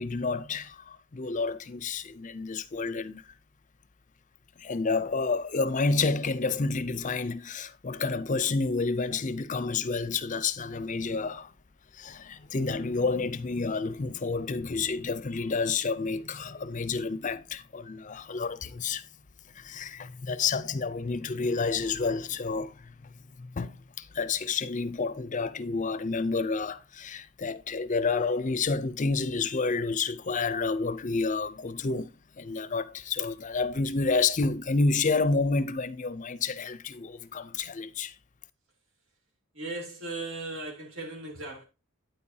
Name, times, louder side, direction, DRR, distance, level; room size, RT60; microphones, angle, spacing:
voice 1, 0.0-3.2 4.6-11.5 11.9-19.1 19.5-22.9 23.4-38.1, left 4 dB, 35° left, 0.6 m, -29 dB
voice 2, 39.5-41.6, right 2 dB, 65° right, 2.7 m, -37 dB
9.3 x 8.5 x 2.8 m
head